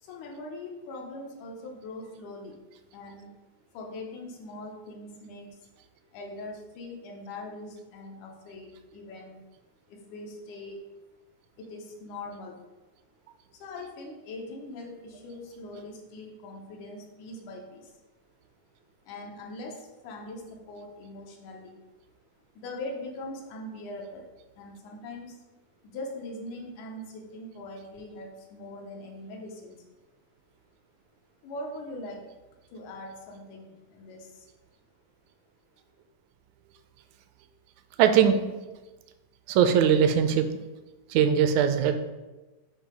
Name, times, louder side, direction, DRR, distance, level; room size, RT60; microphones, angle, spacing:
voice 1, 0.0-2.6 2.9-3.3 3.7-5.6 6.1-9.4 9.9-10.8 11.6-12.6 13.5-18.0 19.0-21.8 22.5-24.2 24.6-25.4 25.8-29.8 31.4-32.3 32.7-34.5, left 2 dB, 90° left, 0 dB, 2.4 m, -41 dB
voice 2, 38.0-38.4 39.5-40.4 41.1-41.9, right 8 dB, 80° right, 8 dB, 1.8 m, -20 dB
7.3 x 2.7 x 5.1 m, 1.1 s
omnidirectional pair, 3.5 m